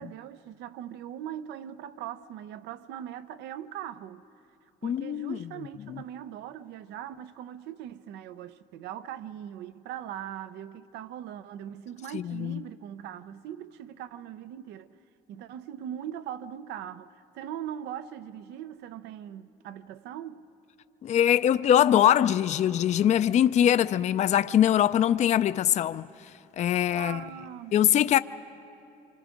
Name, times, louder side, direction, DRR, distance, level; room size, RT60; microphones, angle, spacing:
voice 1, 0.0-4.2 4.8-14.9 15.3-20.4 27.0-27.8, right 10 dB, 85° right, 0.6 m, -40 dB
voice 2, 4.8-5.4 12.1-12.6 21.0-26.1 26.6-27.2 27.7-28.2, left 10 dB, 45° left, 0.4 m, -22 dB
26.0 x 25.0 x 5.2 m
cardioid pair, 110°, 17 cm